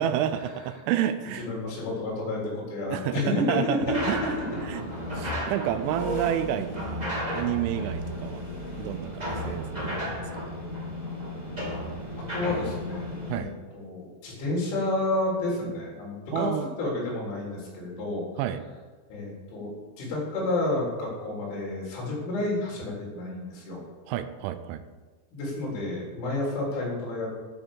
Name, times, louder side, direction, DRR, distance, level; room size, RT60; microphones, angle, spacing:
voice 1, 0.0-1.4 2.9-3.8 4.1-4.2 4.7-4.8 5.1-7.1 7.3-8.4 8.8-10.0 10.3-10.5 13.3-13.5 16.3-16.7 18.4-18.6 24.1-24.8, right 11 dB, 85° right, 11 dB, 3.0 m, -29 dB
voice 2, 1.4-4.0 12.2-13.5 13.7-16.5 16.8-18.3 19.1-19.7 20.0-23.8 25.3-27.3, left 2 dB, 75° left, -4 dB, 5.9 m, -30 dB
sound 1, 3.8-13.4, equal, 10° right, 2.0 m, -33 dB
11.5 x 6.2 x 7.0 m, 1.3 s
omnidirectional pair, 5.5 m